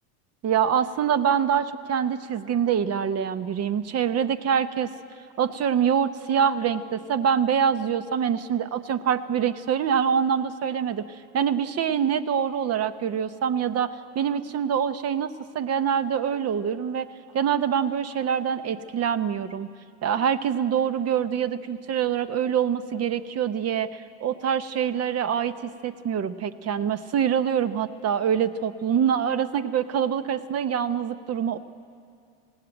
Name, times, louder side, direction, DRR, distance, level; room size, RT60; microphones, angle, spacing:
voice 1, 0.4-4.9 5.4-11.1 11.3-17.1 17.3-19.7 20.0-31.6, right 8 dB, 35° right, 14 dB, 0.9 m, -25 dB
20.0 x 16.5 x 9.0 m, 2.4 s
supercardioid pair, 105°, 46 cm